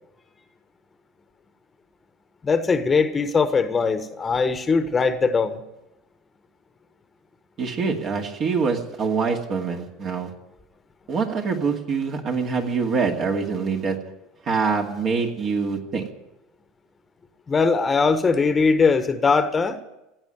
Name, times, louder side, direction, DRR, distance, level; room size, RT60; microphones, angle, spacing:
voice 1, 2.4-5.6 17.5-19.8, left 4 dB, 25° left, 11 dB, 1.2 m, -20 dB
voice 2, 7.6-10.3 11.1-14.0 14.4-16.1, right 5 dB, 45° right, 2 dB, 2.4 m, -25 dB
16.0 x 8.9 x 9.3 m, 0.94 s
hypercardioid pair, 75°, 0 cm